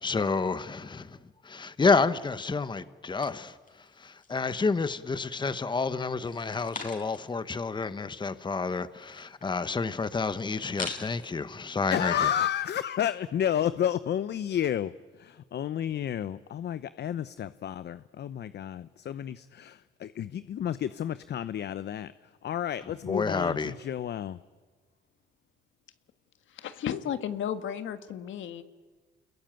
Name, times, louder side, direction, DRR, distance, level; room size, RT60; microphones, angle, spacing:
voice 1, 0.0-1.2 1.4-3.6 4.0-12.3 23.1-23.7, left 4 dB, 25° left, 1.0 m, -29 dB
sound 1, 3.2-4.5 4.9-5.6 6.1-7.4 7.7-7.8 8.0-11.3, left 4 dB, 45° left, 5.3 m, -44 dB
voice 2, 11.9-14.9 15.2-22.1 22.4-24.4, left 10 dB, 60° left, 0.8 m, -31 dB
voice 3, 26.5-28.6, left 9 dB, 75° left, 1.7 m, -33 dB
29.5 x 21.5 x 9.0 m
cardioid pair, 90°, 20 cm